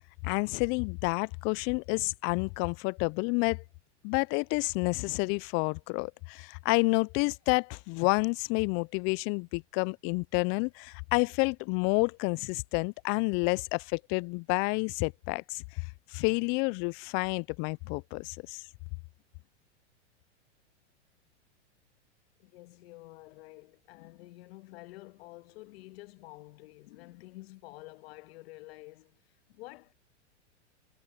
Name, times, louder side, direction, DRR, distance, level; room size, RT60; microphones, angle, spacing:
voice 1, 0.2-3.6 4.0-15.6 16.1-18.6, left 32 dB, 35° left, 0.4 m, -29 dB
voice 2, 22.4-29.2 29.5-29.9, left 21 dB, 60° left, 1.8 m, -49 dB
hypercardioid pair, 105°, 35 cm